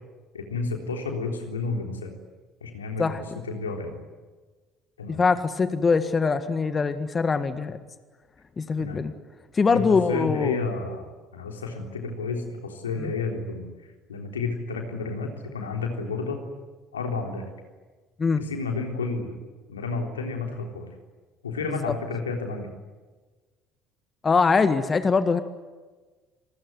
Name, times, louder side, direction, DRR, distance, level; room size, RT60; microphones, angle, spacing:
voice 1, 0.3-2.1 2.6-3.1 3.4-4.0 5.0-5.2 8.8-9.0 9.7-13.7 14.1-16.4 16.9-17.5 18.4-19.3 19.7-20.9 21.4-22.7, left 4 dB, 85° left, 3 dB, 3.6 m, -31 dB
voice 2, 5.1-7.8 8.6-9.1 9.5-10.6 13.0-13.1 18.2-18.4 21.6-21.9 24.2-25.4, left 4 dB, 30° left, 10 dB, 1.7 m, -23 dB
28.0 x 20.5 x 9.5 m, 1.3 s
hypercardioid pair, 60°, 0 cm